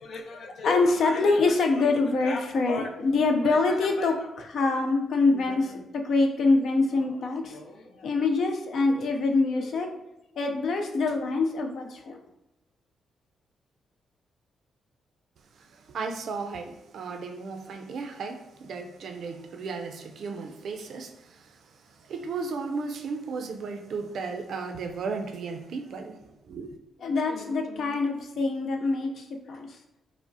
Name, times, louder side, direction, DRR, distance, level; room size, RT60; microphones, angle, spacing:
voice 1, 0.0-9.9 10.4-12.2 27.0-29.7, left 3 dB, 65° left, 4 dB, 0.5 m, -25 dB
voice 2, 15.5-26.8, right 4 dB, 65° right, 5 dB, 0.4 m, -35 dB
4.8 x 2.0 x 2.6 m, 0.93 s
cardioid pair, 100°, 0 cm